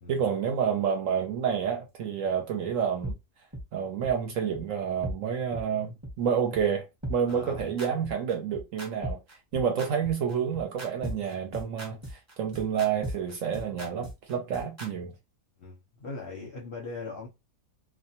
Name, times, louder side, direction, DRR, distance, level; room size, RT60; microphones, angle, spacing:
voice 1, 0.1-3.2 3.7-9.2 9.5-15.1, right 7 dB, 70° right, 0.8 m, -29 dB
sound 1, 3.0-3.1 3.5-3.6 4.0-4.1 4.5-4.6 5.0-5.1 5.5-5.6 6.0-6.1 6.5-6.6 7.0-14.9, right 1 dB, 15° right, 0.6 m, -36 dB
voice 2, 7.3-7.7 9.7-9.8 15.6-17.3, left 3 dB, 55° left, 0.7 m, -40 dB
2.5 x 2.2 x 2.7 m
omnidirectional pair, 1.6 m